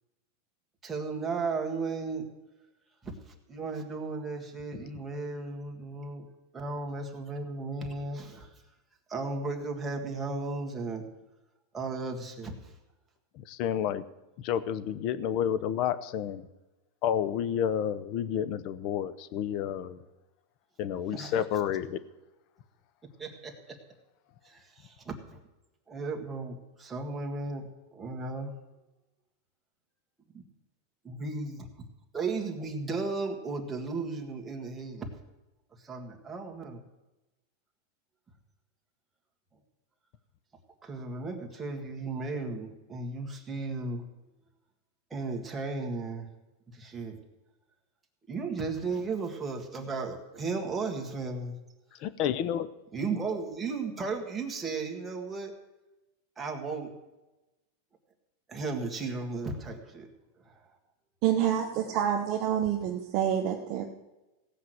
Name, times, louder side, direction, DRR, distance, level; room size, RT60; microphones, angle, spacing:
voice 1, 0.8-2.3 3.5-6.2 6.5-8.5 9.1-11.1 11.7-12.6 21.1-21.4 23.2-23.8 24.5-25.1 25.9-27.7 27.9-28.5 31.0-31.7 32.1-35.1 35.8-36.8 40.8-44.0 45.1-46.3 46.7-47.2 48.3-51.5 52.9-55.5 56.4-56.9 58.5-60.1, right 3 dB, 10° right, 1 dB, 1.9 m, -35 dB
voice 2, 13.4-14.0 14.4-16.4 17.0-20.0 20.8-22.0 52.0-52.7, left 9 dB, 45° left, 14 dB, 0.8 m, -30 dB
voice 3, 61.2-63.8, right 9 dB, 40° right, 1 dB, 1.1 m, -27 dB
16.5 x 5.9 x 7.9 m, 1.0 s
supercardioid pair, 150°, 0 cm